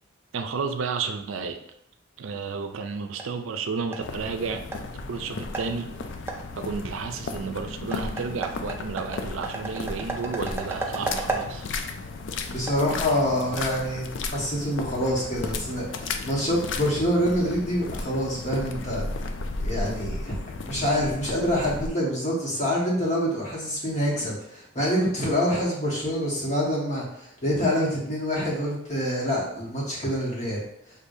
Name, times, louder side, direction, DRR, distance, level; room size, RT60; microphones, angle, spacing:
voice 1, 0.3-1.6 2.2-4.6 5.1-5.9 6.6-11.7, right 5 dB, 80° right, 6 dB, 0.4 m, -32 dB
sound 1, 2.5-14.4, right 2 dB, 10° right, 0.4 m, -37 dB
sound 2, 4.0-21.9, left 3 dB, 65° left, 0.4 m, -34 dB
voice 2, 12.5-19.0 19.6-20.3 20.7-27.0 27.4-30.6, equal, 35° left, -5 dB, 1.4 m, -26 dB
6.4 x 2.6 x 2.7 m, 0.72 s
head